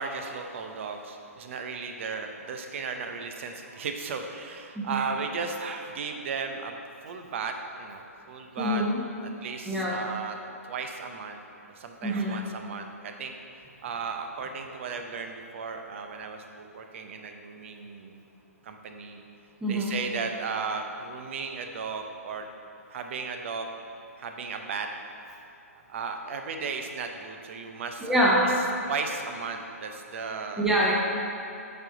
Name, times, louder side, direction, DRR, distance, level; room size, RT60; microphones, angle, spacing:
voice 1, 0.0-6.8 7.0-8.8 9.2-10.4 10.7-11.4 11.8-13.3 13.8-18.2 18.6-19.2 19.7-22.5 22.9-23.7 24.2-24.9 25.7-28.2 28.5-30.7, right 5 dB, 50° right, 5 dB, 0.7 m, -35 dB
voice 2, 8.6-9.0 9.6-10.0 12.0-12.5 19.6-19.9 28.0-28.5 30.6-30.9, equal, 5° right, -6 dB, 0.9 m, -25 dB
7.9 x 4.3 x 3.8 m, 2.7 s
hypercardioid pair, 130°, 8 cm